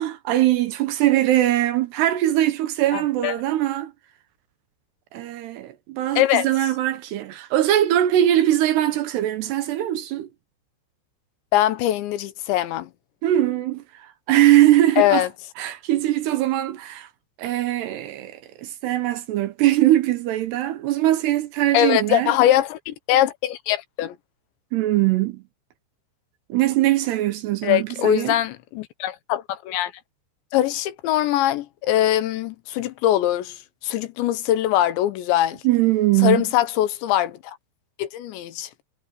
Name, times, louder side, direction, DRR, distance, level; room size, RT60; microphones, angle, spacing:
voice 1, 0.0-3.9 5.1-10.3 13.2-13.8 14.3-15.2 15.6-17.1 17.4-22.3 24.7-25.4 26.5-28.4 35.6-36.4, right 14 dB, 70° right, 2.8 m, -21 dB
voice 2, 2.9-3.3 6.1-6.5 11.5-12.9 15.0-15.3 21.7-24.2 27.6-29.9 30.5-35.6 36.2-37.6 38.0-38.7, left 13 dB, 75° left, 3.2 m, -22 dB
omnidirectional pair, 5.4 m